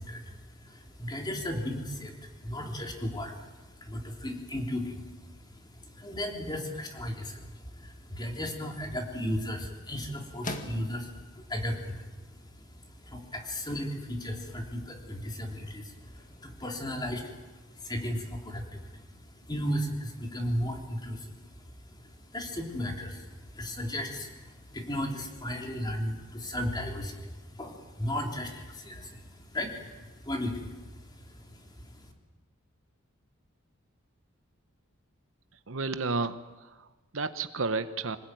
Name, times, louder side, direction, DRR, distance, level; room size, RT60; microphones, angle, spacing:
voice 1, 0.0-32.1, equal, 20° left, 2 dB, 3.4 m, -36 dB
sound 1, 8.4-18.2, left 2 dB, 35° left, 2.0 m, -49 dB
voice 2, 35.7-38.2, right 3 dB, 65° right, 11 dB, 1.0 m, -32 dB
25.0 x 20.0 x 9.2 m, 1.2 s
head